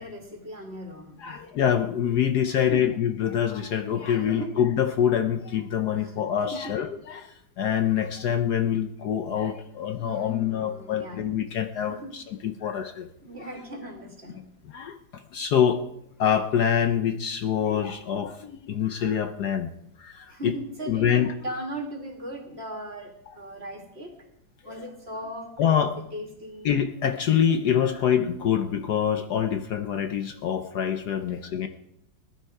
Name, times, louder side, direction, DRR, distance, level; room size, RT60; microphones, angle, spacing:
voice 1, 0.0-1.4 2.5-3.0 4.1-4.6 5.9-6.1 6.5-6.8 10.0-11.2 11.9-12.2 13.2-14.4 20.3-24.3 24.6-26.7 31.1-31.7, right 1 dB, 30° right, 3 dB, 2.2 m, -38 dB
voice 2, 1.2-7.3 7.6-13.1 14.7-15.0 15.3-15.8 16.2-19.7 20.0-20.5 20.9-21.3 25.6-26.0 26.6-31.7, left 9 dB, 65° left, 8 dB, 1.2 m, -25 dB
19.5 x 11.5 x 4.8 m, 0.79 s
omnidirectional pair, 2.1 m